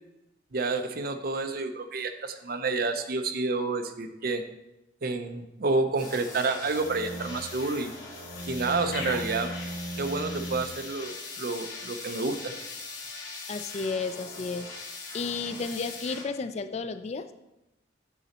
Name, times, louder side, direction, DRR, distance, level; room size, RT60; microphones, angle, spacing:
voice 1, 0.5-4.4 5.0-7.9 8.5-9.5 10.0-12.5, right 3 dB, 50° right, 7 dB, 0.6 m, -29 dB
sound 1, 6.0-16.2, left 4 dB, 85° left, 2.5 m, -41 dB
sound 2, 6.0-10.6, right 1 dB, 75° right, 0.9 m, -39 dB
sound 3, 8.9-10.8 11.1-11.3, left 3 dB, 65° left, 1.4 m, -41 dB
voice 2, 13.5-14.7 15.1-17.3, left 4 dB, 35° left, 11 dB, 0.3 m, -32 dB
8.2 x 4.0 x 4.2 m, 0.94 s
head